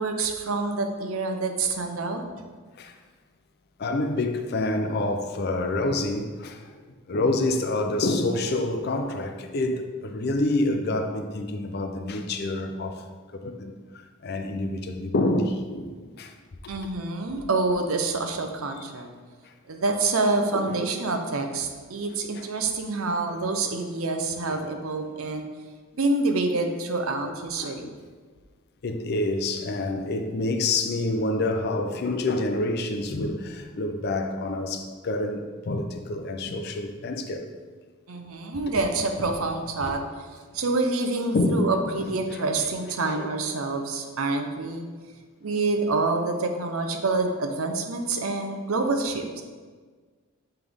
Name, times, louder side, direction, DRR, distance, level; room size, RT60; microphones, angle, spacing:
voice 1, 0.0-2.2 16.7-19.1 19.7-25.5 26.0-27.9 38.1-40.0 40.5-44.9 45.4-49.4, right 3 dB, 90° right, 0.7 m, -27 dB
voice 2, 3.8-6.7 7.1-13.0 13.3-16.3 19.4-19.5 20.5-20.8 22.3-22.5 27.2-27.3 27.6-27.9 28.8-37.5 38.7-38.8 39.8-39.9 41.3-42.6 43.0-43.3, left 2 dB, 50° left, 0.5 m, -28 dB
8.0 x 3.4 x 3.5 m
head